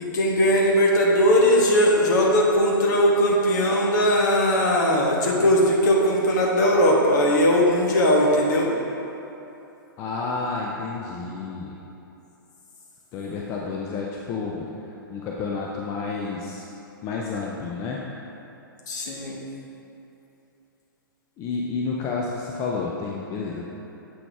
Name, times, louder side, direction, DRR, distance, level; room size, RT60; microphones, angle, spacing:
voice 1, 0.0-8.7 18.9-19.4, equal, 50° left, -1 dB, 1.3 m, -19 dB
voice 2, 10.0-11.7 13.1-14.7 15.1-16.6 17.0-18.0 21.4-23.7, left 4 dB, 25° left, -3 dB, 0.6 m, -30 dB
7.7 x 5.9 x 3.5 m, 2.9 s
figure-of-eight pair, 115°, 12 cm